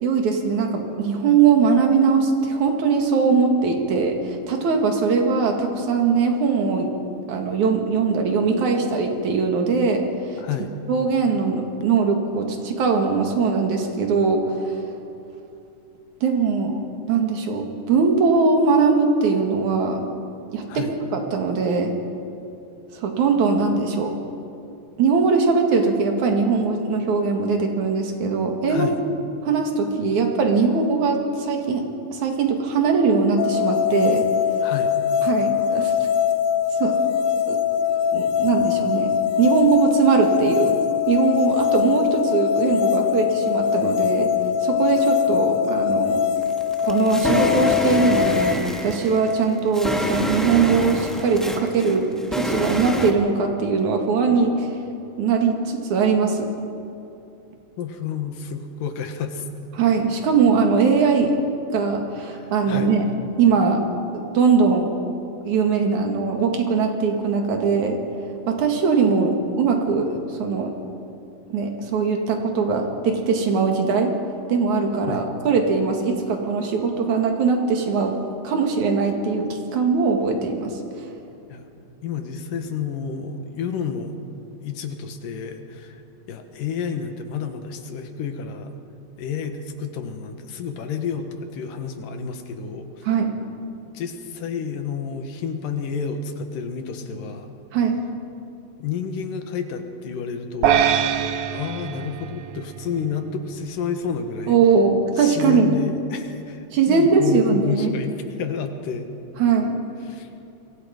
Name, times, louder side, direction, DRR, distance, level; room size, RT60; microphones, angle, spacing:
voice 1, 0.0-6.9 7.3-10.4 10.9-14.4 16.2-16.8 17.1-20.0 20.5-21.9 22.9-24.1 25.0-28.9 29.4-31.8 32.1-34.2 35.2-35.9 36.8-37.0 37.5-37.6 38.1-39.1 39.4-40.8 41.1-44.3 44.6-46.2 46.9-54.8 55.2-56.5 59.8-61.5 61.7-63.0 63.4-63.8 64.1-64.9 65.4-68.0 68.5-70.7 71.5-74.1 74.5-78.2 78.4-80.8 93.1-93.3 97.7-98.0 104.5-105.7 106.7-107.9 109.4-109.7, right 5 dB, 65° right, 3 dB, 3.4 m, -21 dB
voice 2, 10.4-10.7 20.7-20.9 28.7-29.0 34.6-34.9 57.8-59.5 62.3-63.0 75.1-75.3 81.5-84.2 84.6-86.0 86.3-88.7 89.2-93.1 93.9-97.5 98.8-100.8 101.5-104.6 105.2-109.1 110.0-110.3, left 6 dB, 90° left, 6 dB, 3.1 m, -30 dB
sound 1, 33.4-48.6, left 8 dB, 70° left, 1.8 m, -22 dB
sound 2, 46.4-53.1, equal, ahead, 0.7 m, -27 dB
sound 3, 100.6-103.1, right 8 dB, 80° right, 1.3 m, -23 dB
28.0 x 22.5 x 5.3 m, 2.8 s
omnidirectional pair, 3.8 m